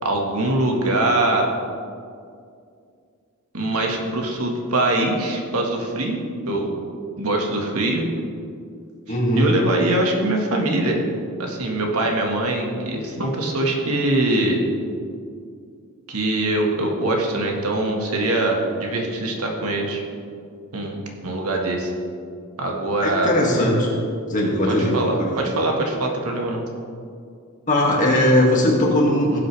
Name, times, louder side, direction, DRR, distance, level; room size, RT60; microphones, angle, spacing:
voice 1, 0.0-1.5 3.5-6.7 7.2-8.0 9.3-11.0 11.4-14.6 16.1-20.0 20.7-21.9 22.6-23.3 24.6-26.6, right 2 dB, 80° right, 0 dB, 1.7 m, -23 dB
voice 2, 9.1-9.5 23.0-23.9 24.3-25.6 27.7-29.4, left 1 dB, 35° left, -3 dB, 2.2 m, -19 dB
17.0 x 7.8 x 3.4 m, 2.3 s
head